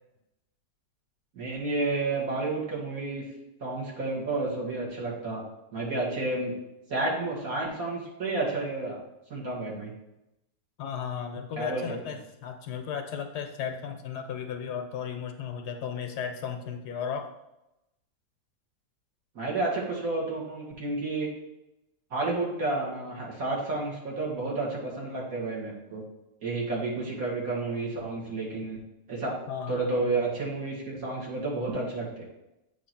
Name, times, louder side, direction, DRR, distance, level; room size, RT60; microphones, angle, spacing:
voice 1, 1.3-3.2 3.6-5.4 5.7-6.5 6.9-9.0 9.3-9.9 11.6-11.8 19.4-21.3 22.1-26.0 26.4-28.8 29.1-29.3 29.7-32.2, right 2 dB, 55° right, -4 dB, 2.4 m, -31 dB
voice 2, 10.8-17.3 29.5-30.2, left 7 dB, 70° left, 5 dB, 1.2 m, -35 dB
8.2 x 3.1 x 5.8 m, 0.91 s
omnidirectional pair, 1.9 m